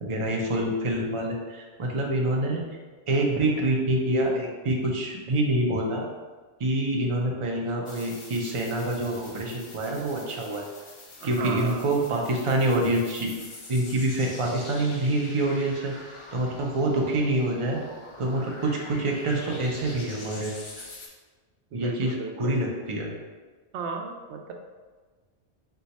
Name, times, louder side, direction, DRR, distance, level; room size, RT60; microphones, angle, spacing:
voice 1, 0.0-2.6 3.1-6.1 6.6-10.6 11.2-13.3 13.7-20.5 21.7-23.1, right 1 dB, 35° right, -1 dB, 0.6 m, -26 dB
sound 1, 7.9-21.1, left 2 dB, 40° left, 0.5 m, -45 dB
voice 2, 11.2-11.8 21.7-22.6 23.7-24.5, right 5 dB, 80° right, 2 dB, 0.9 m, -35 dB
4.4 x 2.3 x 4.0 m, 1.4 s
omnidirectional pair, 1.1 m